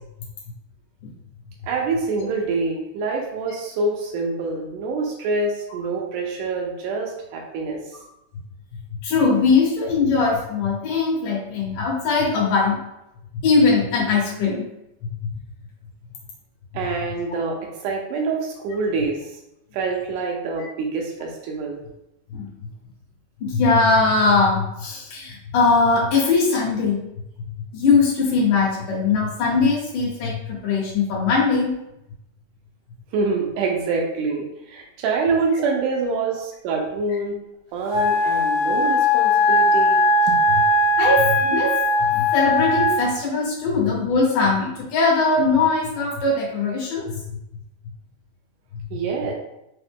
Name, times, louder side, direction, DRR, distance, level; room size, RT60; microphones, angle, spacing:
voice 1, 1.6-8.0 16.7-19.3 19.7-21.8 33.1-37.4 37.7-40.4 48.9-49.3, right 3 dB, 80° right, 1 dB, 2.0 m, -26 dB
voice 2, 9.0-12.8 13.4-14.6 15.2-15.3 22.3-22.5 23.4-27.0 27.7-31.7 41.0-41.7 42.1-47.1, left 4 dB, 75° left, -5 dB, 2.5 m, -20 dB
Wind instrument woodwind instrument, 37.9-43.1, left 1 dB, 60° left, 1.6 m, -19 dB
5.5 x 2.0 x 3.5 m, 0.85 s
omnidirectional pair, 3.8 m